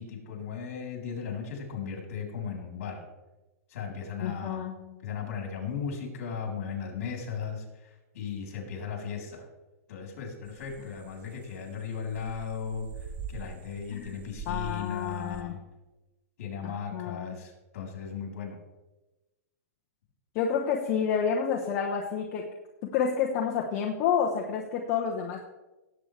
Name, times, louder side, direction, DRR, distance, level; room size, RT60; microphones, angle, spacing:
voice 1, 0.0-3.0 3.7-4.7 5.0-9.5 9.9-15.6 16.4-18.6, left 6 dB, 60° left, 1 dB, 3.8 m, -36 dB
voice 2, 4.2-5.0 10.8-10.9 13.9-14.2 14.5-15.5 16.6-17.4 20.3-22.5 22.8-25.4, left 7 dB, 35° left, 0 dB, 1.0 m, -29 dB
sound 1, 10.4-15.4, right 6 dB, 20° right, 0.6 m, -44 dB
17.5 x 8.1 x 3.4 m, 1.1 s
hypercardioid pair, 145°, 9 cm